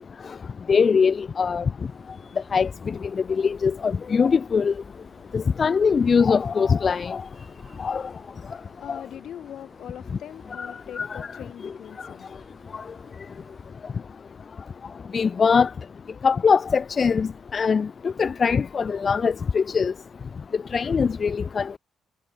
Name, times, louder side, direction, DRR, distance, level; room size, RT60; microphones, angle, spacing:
voice 1, 0.7-1.6 2.5-2.9 3.4-4.7 5.3-7.2 7.8-8.0 10.6-10.7 11.0-11.3 15.1-15.7 16.2-17.9 18.2-19.9 20.7-21.8, left 5 dB, 40° left, 0.3 m, -22 dB
sound 1, 1.8-13.7, right 4 dB, 35° right, 6.7 m, -59 dB
voice 2, 8.4-12.6, left 10 dB, 70° left, 5.8 m, -43 dB
cardioid pair, 90°, 0 cm